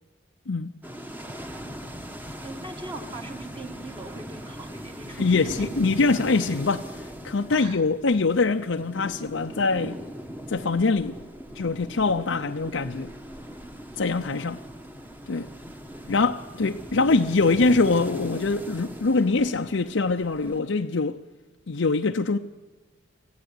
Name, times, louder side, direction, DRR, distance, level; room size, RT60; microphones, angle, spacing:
sound 1, 0.8-20.6, equal, 10° right, 1.2 m, -39 dB
voice 1, 2.4-5.7 7.5-7.9 14.4-14.5 15.9-16.1, right 2 dB, 25° right, 1.8 m, -40 dB
voice 2, 5.1-6.9 7.2-10.0 10.5-11.2 11.6-13.1 14.0-14.6 15.3-15.5 16.1-21.2 21.7-22.4, left 3 dB, 70° left, 0.7 m, -23 dB
25.5 x 15.0 x 9.7 m
head